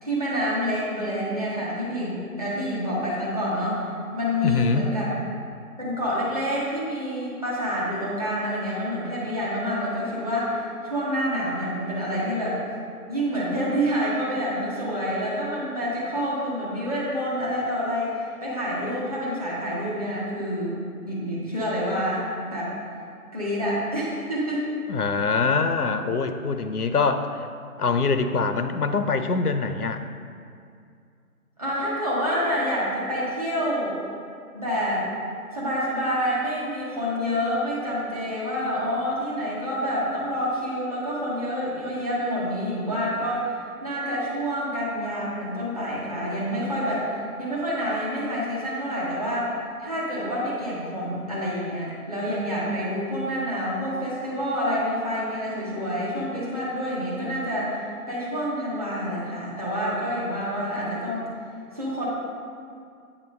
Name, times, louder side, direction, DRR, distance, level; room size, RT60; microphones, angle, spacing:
voice 1, 0.0-3.8 4.1-5.1 5.8-12.6 13.1-20.7 21.0-22.7 23.3-24.6 31.6-33.9 34.5-35.1 35.5-47.1 47.4-49.5 49.8-61.3 61.7-62.1, equal, 25° right, -8 dB, 1.2 m, -27 dB
voice 2, 4.4-4.9 24.9-27.5 27.8-30.0, left 4 dB, 80° left, 8 dB, 0.6 m, -24 dB
8.6 x 3.0 x 5.2 m, 2.3 s
figure-of-eight pair, 160°, 45 cm